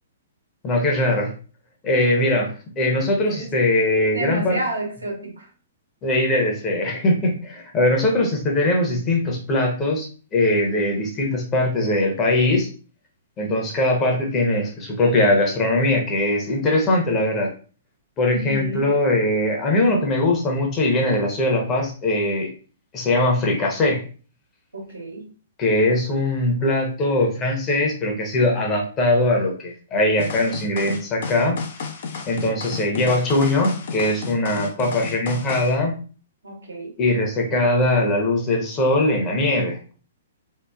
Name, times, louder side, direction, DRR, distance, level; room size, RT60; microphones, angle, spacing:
voice 1, 0.6-1.3 1.8-4.6 6.0-10.1 10.3-12.7 13.4-17.5 18.2-22.5 22.9-24.0 25.6-31.6 32.3-36.0 37.0-39.9, left 1 dB, 25° left, 1 dB, 0.7 m, -21 dB
voice 2, 4.1-5.4 18.2-18.9 24.7-25.2 36.4-36.9, right 1 dB, 85° right, 0 dB, 0.8 m, -30 dB
sound 1, 30.2-35.7, left 5 dB, 60° left, 0.4 m, -32 dB
2.9 x 2.1 x 2.3 m, 0.39 s
hypercardioid pair, 120°, 0 cm